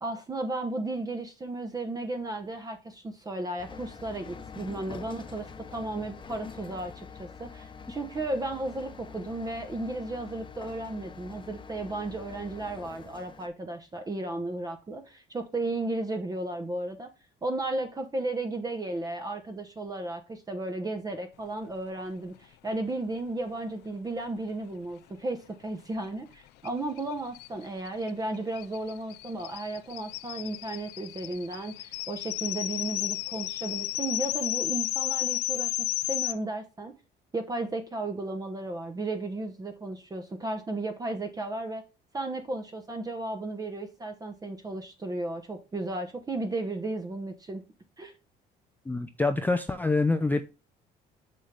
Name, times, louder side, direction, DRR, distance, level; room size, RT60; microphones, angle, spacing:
voice 1, 0.0-17.1 17.4-36.9 37.3-41.8 42.1-47.6 48.0-48.1, right 2 dB, 20° right, 0.9 m, -34 dB
sound 1, 3.6-13.5, left 5 dB, 30° left, 0.9 m, -45 dB
sound 2, 26.6-26.7 27.0-27.1 27.3-36.3, left 17 dB, 85° left, 0.4 m, -33 dB
voice 2, 48.9-50.4, left 3 dB, 10° left, 0.5 m, -26 dB
6.3 x 5.6 x 3.3 m
cardioid pair, 110°, 17 cm